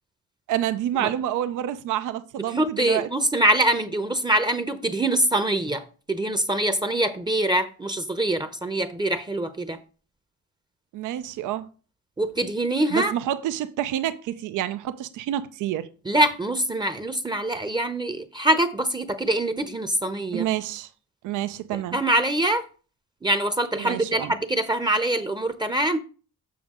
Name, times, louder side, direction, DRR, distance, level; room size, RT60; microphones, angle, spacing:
voice 1, 0.5-3.1 10.9-11.7 12.9-15.9 20.3-20.9 21.2-22.0 23.8-24.3, right 12 dB, 85° right, 0.6 m, -28 dB
voice 2, 2.6-9.8 12.2-13.1 16.1-20.5 21.9-22.7 23.2-26.0, right 1 dB, 15° right, 0.7 m, -24 dB
7.1 x 6.0 x 3.7 m
cardioid pair, 90°, 30 cm